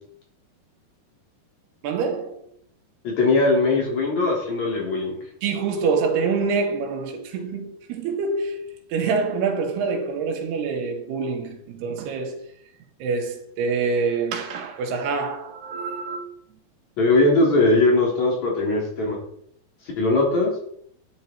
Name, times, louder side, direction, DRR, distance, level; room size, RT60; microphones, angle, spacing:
voice 1, 1.8-2.4 5.4-12.4 13.0-16.3, right 4 dB, 80° right, 3.6 m, -26 dB
voice 2, 3.0-5.2 17.0-19.2 20.0-20.5, left 2 dB, 45° left, 4.4 m, -20 dB
13.0 x 9.6 x 4.5 m
omnidirectional pair, 4.7 m